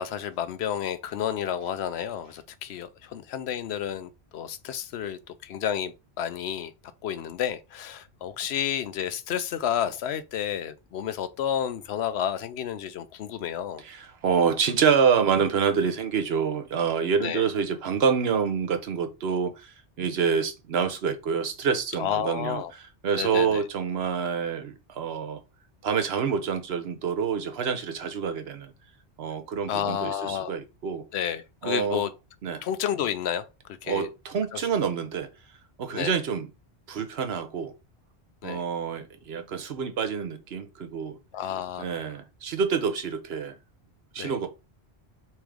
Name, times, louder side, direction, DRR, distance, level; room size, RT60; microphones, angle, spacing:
voice 1, 0.0-6.7 7.0-13.8 17.2-17.5 22.0-22.7 23.2-23.6 29.7-30.5 31.1-32.1 32.6-33.4 33.8-34.1 34.5-34.6 35.9-36.1 38.4-38.6 41.3-42.0 44.2-44.4, left 9 dB, 80° left, 0.9 m, -31 dB
voice 2, 13.8-22.6 23.0-25.4 25.8-28.7 29.2-31.0 31.6-32.1 32.4-32.6 33.9-35.3 35.8-36.5 36.9-37.7 38.4-41.2 41.8-43.6 44.1-44.5, right 6 dB, 75° right, 1.0 m, -27 dB
3.5 x 3.2 x 4.8 m
omnidirectional pair, 1.1 m